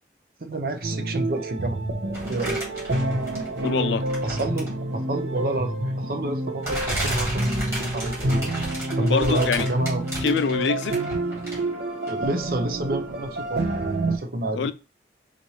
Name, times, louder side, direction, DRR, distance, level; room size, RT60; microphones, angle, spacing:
voice 1, 0.4-1.8 2.3-2.6 4.2-8.7 9.0-10.0 12.1-13.7 14.1-14.7, right 1 dB, 50° right, 0.6 m, -29 dB
sound 1, 0.8-14.2, right 2 dB, 80° right, 0.9 m, -28 dB
sound 2, 2.1-3.7 4.1-4.8 5.8-5.9 6.6-11.7 12.1-12.2, right 1 dB, 15° right, 2.1 m, -33 dB
voice 2, 3.6-4.1 9.0-9.7 10.2-11.0 14.6-14.7, left 6 dB, 80° left, 0.4 m, -24 dB
5.0 x 3.1 x 2.8 m
head